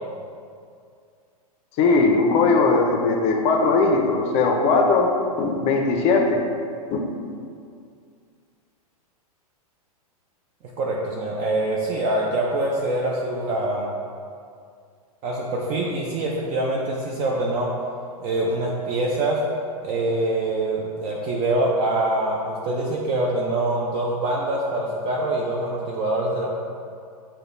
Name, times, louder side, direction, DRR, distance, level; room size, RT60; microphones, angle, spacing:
voice 1, 1.8-5.1 5.4-6.4 6.9-7.0, left 3 dB, 35° left, 2 dB, 0.5 m, -19 dB
voice 2, 10.8-13.9 15.2-17.7 18.2-19.4 19.8-26.5, right 2 dB, 35° right, -3 dB, 0.4 m, -24 dB
6.5 x 2.2 x 2.5 m, 2.3 s
hypercardioid pair, 110°, 19 cm